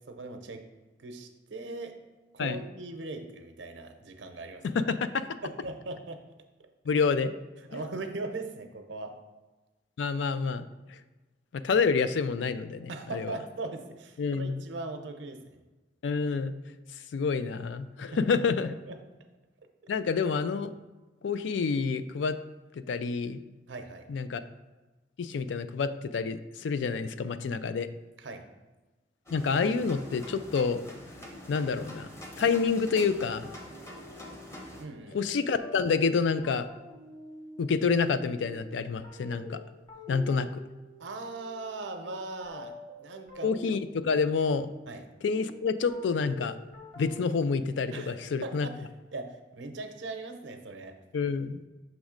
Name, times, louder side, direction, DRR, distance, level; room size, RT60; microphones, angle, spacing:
voice 1, 0.1-0.6 1.0-1.9 2.3-4.6 5.4-6.2 7.7-9.1 12.9-15.6 18.0-18.4 18.9-19.0 23.7-24.0 28.2-28.4 34.8-35.2 41.0-43.5 44.9-45.0 47.9-48.1 48.4-48.8 49.1-50.9, right 3 dB, 85° right, 6 dB, 0.7 m, -39 dB
voice 2, 4.6-5.3 6.9-7.3 10.0-10.7 11.5-13.3 14.2-14.6 16.0-16.5 17.1-18.7 19.9-20.7 21.2-22.4 22.7-23.4 24.1-24.4 25.2-27.9 29.3-30.8 31.5-32.1 32.4-33.5 35.1-36.7 37.6-39.6 40.1-40.5 43.4-44.7 45.2-46.6 47.0-48.7 51.1-51.6, left 5 dB, 85° left, 12 dB, 0.4 m, -28 dB
sound 1, 29.3-34.8, left 1 dB, 15° left, 0.7 m, -45 dB
sound 2, 33.4-48.8, equal, 35° left, 1.1 m, -49 dB
6.1 x 3.1 x 5.0 m, 1.2 s
head